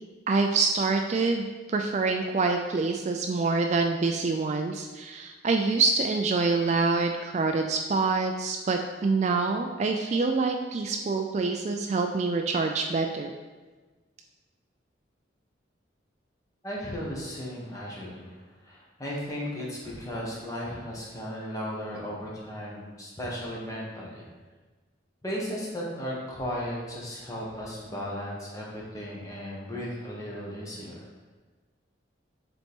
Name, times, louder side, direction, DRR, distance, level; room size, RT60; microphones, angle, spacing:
voice 1, 0.3-13.3, right 4 dB, 35° right, 4 dB, 0.3 m, -26 dB
voice 2, 16.6-24.2 25.2-31.0, equal, 20° left, -4 dB, 1.3 m, -36 dB
7.2 x 4.0 x 3.6 m, 1.3 s
head